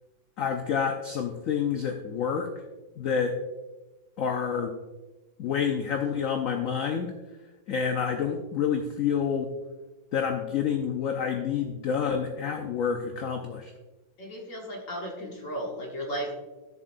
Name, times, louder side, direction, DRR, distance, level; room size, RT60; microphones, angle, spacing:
voice 1, 0.4-2.5 3.0-3.3 4.2-4.7 5.4-7.1 7.7-9.5 10.1-13.7, left 7 dB, 65° left, 4 dB, 0.8 m, -28 dB
voice 2, 14.2-16.4, equal, 45° left, 0 dB, 1.5 m, -35 dB
12.0 x 7.3 x 2.6 m, 1.2 s
omnidirectional pair, 2.1 m